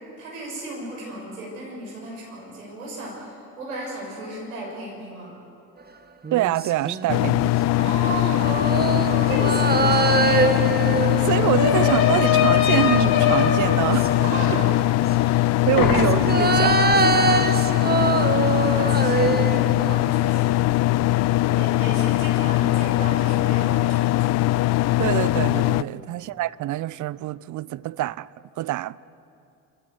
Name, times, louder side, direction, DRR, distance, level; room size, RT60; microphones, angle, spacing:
voice 1, 0.2-5.3 7.8-8.5 9.2-10.6 10.9-11.1 14.2-14.8 15.2-16.0 17.2-17.8 18.4-19.4 19.9-20.6 21.1-24.4 25.8-26.1, right 2 dB, 80° right, 6.3 m, -35 dB
sound 1, 6.2-7.5 8.4-12.8 13.6-14.8 15.6-20.3 20.6-20.7, right 4 dB, 25° right, 1.7 m, -24 dB
voice 2, 6.3-7.6 11.2-14.2 14.5-14.6 15.7-16.8 17.4-17.5 25.0-28.3 28.6-29.0, right 15 dB, 45° right, 0.6 m, -25 dB
sound 2, 7.1-25.8, left 16 dB, 40° left, 0.4 m, -21 dB
sound 3, 9.9-10.0 10.2-15.5 15.8-16.5, left 7 dB, 60° left, 2.5 m, -25 dB
27.0 x 15.0 x 8.2 m
figure-of-eight pair, 50°, 41 cm